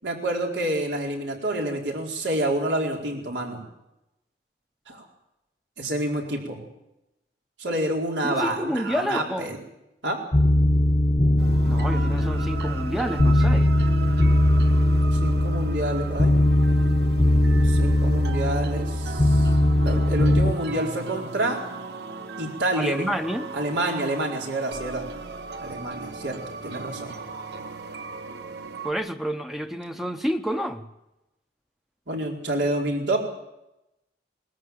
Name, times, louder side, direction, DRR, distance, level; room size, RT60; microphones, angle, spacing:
voice 1, 0.0-3.6 4.9-5.1 5.8-6.6 7.6-9.6 10.0-10.2 15.1-16.3 17.6-19.5 19.8-21.6 22.4-23.1 23.5-25.0 25.6-27.2 32.1-33.2, right 1 dB, 85° right, 0 dB, 4.6 m, -28 dB
voice 2, 8.2-9.6 11.6-13.8 22.7-23.5 28.8-30.9, equal, ahead, 7 dB, 0.7 m, -29 dB
sound 1, 10.3-20.5, left 1 dB, 30° left, 0.8 m, -20 dB
sound 2, 11.4-28.9, right 3 dB, 65° right, 1.3 m, -37 dB
20.5 x 14.0 x 9.4 m, 0.91 s
head